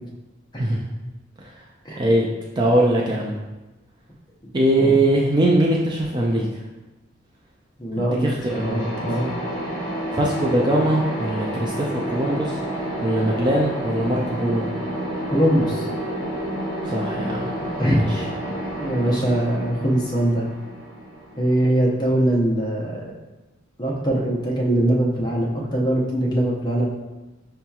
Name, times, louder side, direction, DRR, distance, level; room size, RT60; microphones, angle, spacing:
voice 1, 2.0-2.3 2.6-3.3 4.5-6.6 8.0-8.8 10.1-14.7 16.8-17.5 17.9-18.2 19.0-19.2, right 1 dB, 20° right, -2 dB, 0.3 m, -22 dB
voice 2, 7.8-9.4 15.3-15.9 17.6-18.1 18.7-20.5 21.4-23.0 23.8-26.8, right 1 dB, 20° left, -3 dB, 0.7 m, -22 dB
sound 1, 8.4-22.1, right 1 dB, 45° left, 1.2 m, -30 dB
5.4 x 2.8 x 2.3 m, 1.1 s
head